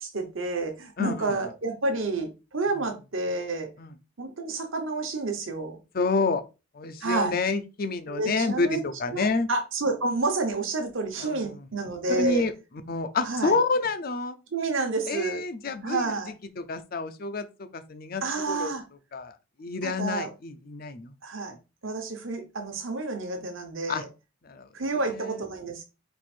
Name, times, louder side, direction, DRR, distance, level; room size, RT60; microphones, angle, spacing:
voice 1, 0.0-3.7 4.2-5.8 7.0-7.4 8.1-8.8 9.1-12.5 13.2-13.6 14.5-15.4 15.8-16.3 18.2-18.8 19.8-20.3 21.2-21.6 21.8-24.1 24.7-25.8, right 3 dB, 65° right, 1.0 m, -29 dB
voice 2, 1.0-1.4 3.8-3.9 5.9-6.4 6.7-9.5 11.2-11.5 12.1-12.5 12.9-14.4 15.1-16.1 16.6-17.5 17.7-18.7 19.1-19.3 19.6-21.1 23.9-24.0 24.4-24.7 25.2-25.4, left 3 dB, 45° left, 0.5 m, -28 dB
4.4 x 2.5 x 4.3 m
head